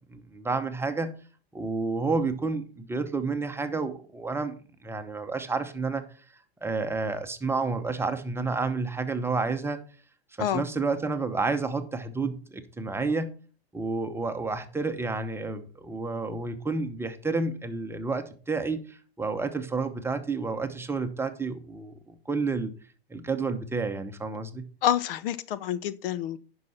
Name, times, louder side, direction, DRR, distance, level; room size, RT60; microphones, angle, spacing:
voice 1, 0.1-1.1 1.5-4.5 4.8-6.0 6.6-9.8 10.4-13.3 13.7-22.7 23.1-24.7, right 3 dB, 10° right, 0.9 m, -30 dB
voice 2, 24.8-26.4, left 11 dB, 60° left, 0.7 m, -28 dB
10.5 x 5.7 x 4.2 m
hypercardioid pair, 120°, 32 cm